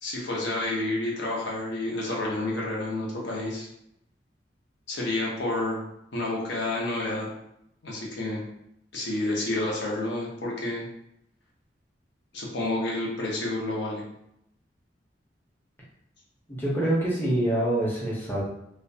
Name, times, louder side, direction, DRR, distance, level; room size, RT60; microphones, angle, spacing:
voice 1, 0.0-3.7 4.9-5.8 6.1-7.3 7.8-8.4 8.9-10.9 12.3-14.0, left 2 dB, 75° left, -3 dB, 0.7 m, -29 dB
voice 2, 16.5-18.4, right 1 dB, 10° left, -7 dB, 0.6 m, -25 dB
2.5 x 2.1 x 2.6 m, 0.79 s
head